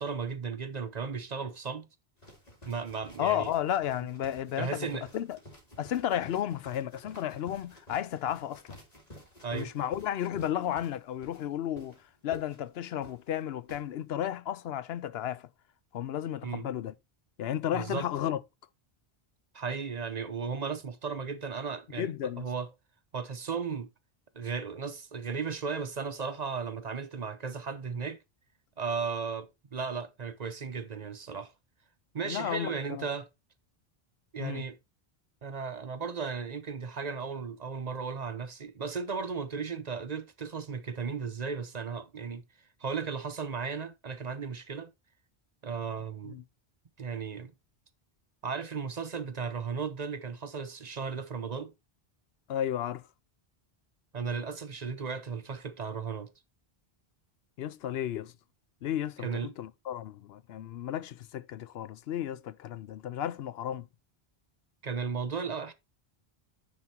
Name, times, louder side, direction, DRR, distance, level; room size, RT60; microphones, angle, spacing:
voice 1, 0.0-1.9 2.6-3.5 4.6-5.1 9.4-9.7 16.4-16.7 17.7-18.1 19.5-22.1 22.4-22.7 23.1-23.9 24.3-28.2 28.8-31.5 32.1-33.3 34.3-34.8 35.4-42.4 42.8-44.9 45.6-46.4 47.0-47.5 48.4-51.7 54.1-56.3 59.2-59.5 64.8-65.7, right 5 dB, 45° right, 0.8 m, -35 dB
sound 1, 2.2-13.8, left 1 dB, 40° left, 2.7 m, -52 dB
voice 2, 3.2-4.9 5.1-5.4 5.8-8.8 9.5-15.5 15.9-16.9 17.4-18.4 22.0-22.4 32.2-33.1 34.4-34.6 46.2-46.4 52.5-53.0 57.6-58.3 58.8-63.9, left 11 dB, 80° left, 0.8 m, -33 dB
9.6 x 4.2 x 4.3 m
omnidirectional pair, 1.0 m